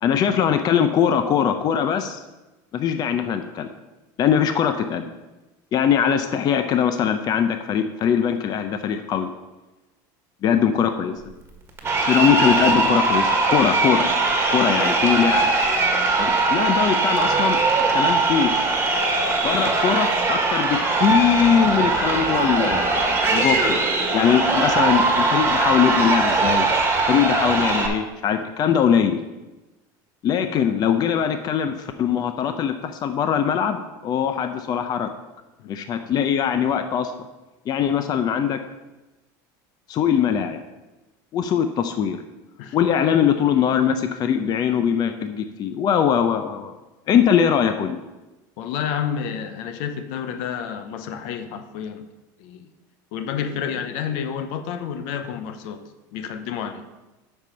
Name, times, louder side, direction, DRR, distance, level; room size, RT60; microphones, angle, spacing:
voice 1, 0.0-2.2 2.7-3.7 4.2-5.1 5.7-9.3 10.4-11.2 12.1-14.1 14.5-15.5 16.2-17.6 17.9-18.5 19.4-23.0 23.3-23.8 24.1-26.7 27.1-29.2 30.2-35.1 35.7-37.1 37.7-38.6 39.9-40.6 41.3-42.2 42.7-46.7 47.1-48.0, left 8 dB, 40° left, 8 dB, 0.6 m, -21 dB
Crowd, 11.8-27.9, right 3 dB, 25° right, 1.6 m, -20 dB
voice 2, 48.6-52.1 52.4-52.7 53.1-55.8 56.1-56.8, left 8 dB, 70° left, 9 dB, 0.8 m, -30 dB
7.8 x 5.5 x 5.7 m, 1.1 s
supercardioid pair, 115°, 10 cm